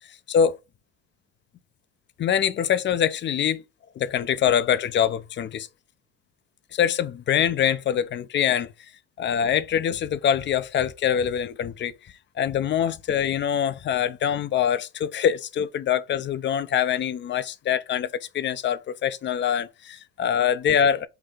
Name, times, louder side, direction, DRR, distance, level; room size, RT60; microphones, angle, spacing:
voice 1, 0.1-0.6 2.2-3.6 4.0-5.7 6.7-8.7 9.2-21.1, left 9 dB, 35° left, 0.6 m, -24 dB
5.8 x 2.7 x 3.3 m
supercardioid pair, 80°, 32 cm